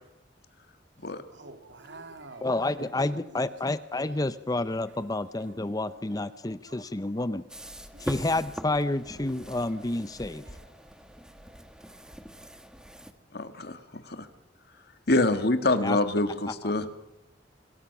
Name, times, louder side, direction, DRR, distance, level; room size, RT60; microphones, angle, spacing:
voice 1, 1.3-3.5 4.9-5.0 5.4-5.9 6.5-6.9 7.9-8.1 9.4-9.9 10.4-10.7, right 2 dB, 75° right, 2.7 m, -49 dB
voice 2, 2.4-7.4 8.0-10.4 15.8-16.0 16.5-16.7, left 2 dB, 20° left, 0.7 m, -29 dB
sound 1, 7.5-13.1, equal, 5° right, 1.5 m, -42 dB
voice 3, 13.3-14.3 15.1-16.8, left 2 dB, 60° left, 1.9 m, -26 dB
26.0 x 20.5 x 6.1 m
head